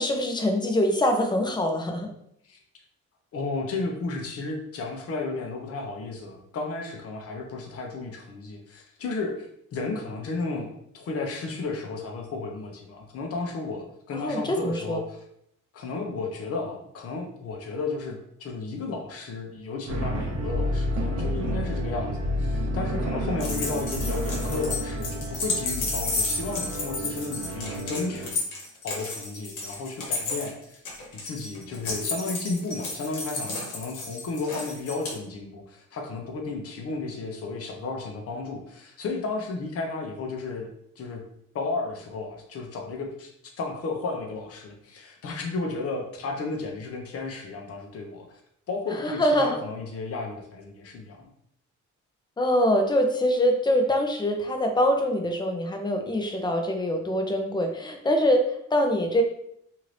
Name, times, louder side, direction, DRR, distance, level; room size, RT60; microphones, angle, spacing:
voice 1, 0.0-2.1 14.1-15.0 48.9-49.6 52.4-59.2, equal, 15° left, 4 dB, 0.5 m, -24 dB
voice 2, 3.3-10.7 10.9-15.2 15.7-30.8 31.2-40.7 41.0-41.2 41.5-43.3 43.6-48.3 48.7-51.3, left 3 dB, 50° left, 1 dB, 0.7 m, -33 dB
sound 1, 19.9-28.3, equal, 60° right, 0.8 m, -30 dB
sound 2, 23.4-35.1, left 3 dB, 85° left, 1.1 m, -32 dB
2.8 x 2.5 x 3.2 m, 0.73 s
cardioid pair, 90°, 30 cm